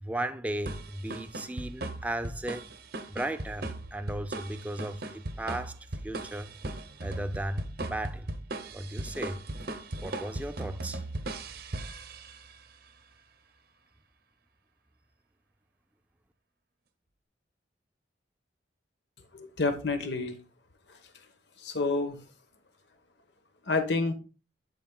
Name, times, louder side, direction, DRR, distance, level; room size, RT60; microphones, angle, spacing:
voice 1, 0.0-2.6 3.1-5.8 6.0-6.5 7.0-8.3 8.7-9.4 10.0-11.0, right 1 dB, 10° right, 0.4 m, -35 dB
sound 1, 0.7-12.6, right 2 dB, 55° right, 0.8 m, -38 dB
voice 2, 19.3-20.4 21.6-22.2 23.7-24.1, left 3 dB, 65° left, 1.1 m, -28 dB
13.0 x 4.6 x 2.3 m
head